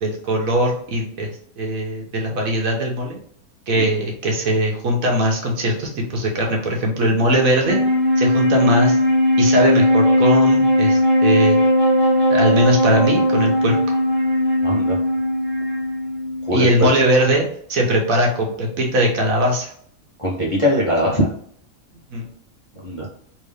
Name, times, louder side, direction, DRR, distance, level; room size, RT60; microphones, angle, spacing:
voice 1, 0.0-1.3 1.6-3.2 3.7-7.8 8.2-9.0 9.4-11.6 12.3-13.8 16.5-19.7 22.1-22.2, right 1 dB, 75° right, 0 dB, 1.4 m, -20 dB
Wind instrument woodwind instrument, 7.5-17.0, left 1 dB, 25° right, 0.7 m, -18 dB
voice 2, 14.6-15.0 16.5-16.9 20.2-21.3 22.8-23.1, equal, 30° left, -5 dB, 0.7 m, -21 dB
3.6 x 2.8 x 3.3 m, 0.63 s
omnidirectional pair, 1.5 m